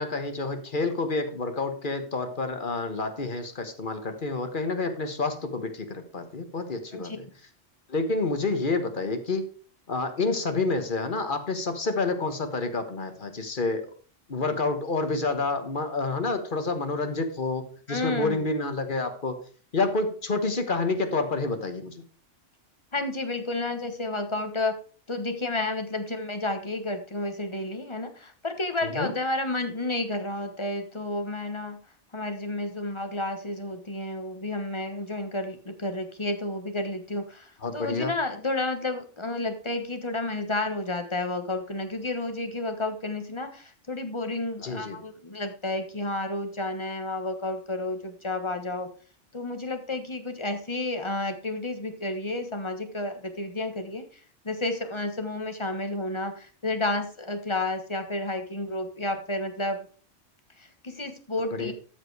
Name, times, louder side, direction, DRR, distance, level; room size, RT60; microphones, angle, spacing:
voice 1, 0.0-7.2 7.9-9.5 9.9-13.9 14.3-19.4 19.7-22.0 28.8-29.1 37.6-38.1 44.6-45.0 61.5-61.7, left 3 dB, 45° left, 8 dB, 1.4 m, -29 dB
voice 2, 17.9-18.4 22.9-24.7 25.1-31.8 32.1-48.9 49.3-59.9 60.6-61.7, left 2 dB, 25° left, 7 dB, 1.3 m, -31 dB
13.0 x 5.1 x 4.7 m, 0.41 s
omnidirectional pair, 1.3 m